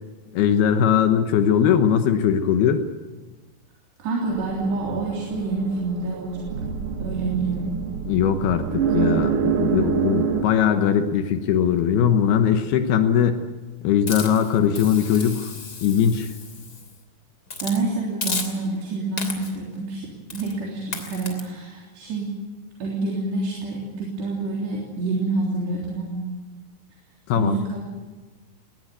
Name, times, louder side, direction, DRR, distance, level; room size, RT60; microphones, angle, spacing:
voice 1, 0.3-2.8 8.1-13.4 13.8-15.5 15.8-16.3 27.3-27.6, left 8 dB, 75° left, 7 dB, 3.0 m, -20 dB
voice 2, 4.0-6.6 7.0-7.7 17.6-22.3 22.8-26.3 27.3-27.8, right 3 dB, 90° right, -3 dB, 5.7 m, -27 dB
sound 1, 4.3-10.4, right 7 dB, 65° right, 1.5 m, -26 dB
Hiss, 14.1-16.9 17.5-17.8 18.2-18.8 19.2-19.6 20.3-20.5 20.9-21.4, left 3 dB, 25° left, 2.9 m, -33 dB
20.0 x 20.0 x 9.5 m, 1.3 s
omnidirectional pair, 4.7 m